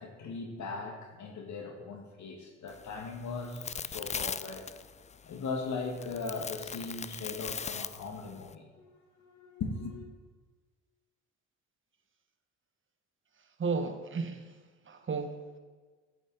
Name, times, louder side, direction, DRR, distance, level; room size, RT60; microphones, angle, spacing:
voice 1, 0.0-4.7 5.3-8.9 9.2-10.1, left 4 dB, 60° left, 2 dB, 2.1 m, -39 dB
sound 1, 2.7-8.5, left 6 dB, 20° left, 0.4 m, -40 dB
voice 2, 13.6-14.4 14.9-15.6, right 4 dB, 35° right, 7 dB, 1.6 m, -33 dB
13.0 x 8.7 x 4.3 m, 1.4 s
hypercardioid pair, 55°, 33 cm